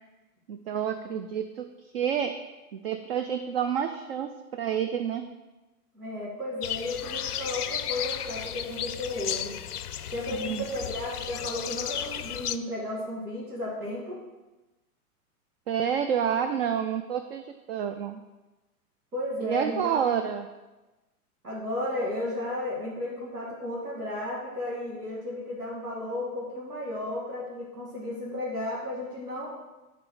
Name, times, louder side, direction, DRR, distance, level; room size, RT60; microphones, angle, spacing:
voice 1, 0.5-2.4 2.7-5.2 10.3-10.6 15.7-18.2 19.4-20.5, right 8 dB, 40° right, 8 dB, 0.5 m, -29 dB
voice 2, 5.9-9.5 10.1-14.2 19.1-20.0 21.4-29.5, left 1 dB, 85° right, -5 dB, 2.2 m, -34 dB
sound 1, 6.6-12.6, left 10 dB, 80° left, 0.6 m, -34 dB
7.5 x 3.9 x 6.4 m, 1.1 s
figure-of-eight pair, 110°, 45 cm